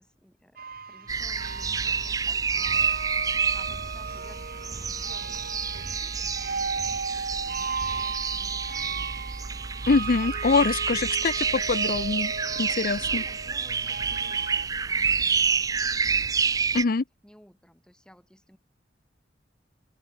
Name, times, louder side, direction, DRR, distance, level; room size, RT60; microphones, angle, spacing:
voice 1, 0.0-6.8 7.1-9.9 10.2-10.4 10.7-11.0 12.3-16.7 17.2-18.6, equal, 5° left, 6.2 m, -56 dB
sound 1, 0.6-14.7, right 5 dB, 55° right, 3.9 m, -36 dB
sound 2, 1.1-16.8, right 5 dB, 20° right, 0.3 m, -28 dB
voice 2, 9.9-13.2 16.7-17.0, left 4 dB, 50° left, 0.6 m, -24 dB
open air
head